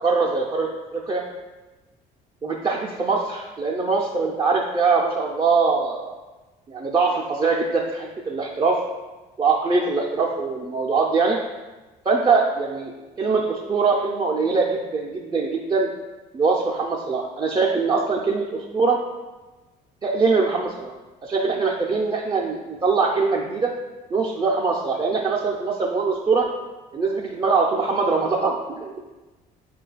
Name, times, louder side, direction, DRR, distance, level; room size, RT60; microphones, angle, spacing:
voice 1, 0.0-1.2 2.4-6.2 6.7-8.8 9.4-11.4 12.1-12.9 13.2-15.9 16.3-19.0 20.0-20.9 21.2-23.7 24.1-26.5 26.9-29.1, right 4 dB, 25° right, -2 dB, 0.4 m, -22 dB
4.9 x 2.3 x 3.9 m, 1.2 s
cardioid pair, 110°, 17 cm